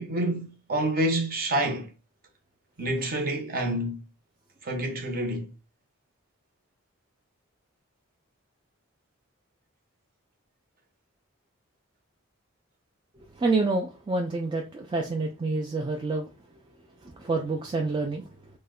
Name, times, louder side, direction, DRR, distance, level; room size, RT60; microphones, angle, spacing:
voice 1, 0.0-1.9 2.8-4.0 4.6-5.5, right 1 dB, 45° right, 0.7 m, -28 dB
voice 2, 13.3-16.3 17.0-18.3, right 3 dB, 25° right, 0.3 m, -28 dB
3.1 x 2.1 x 3.6 m
head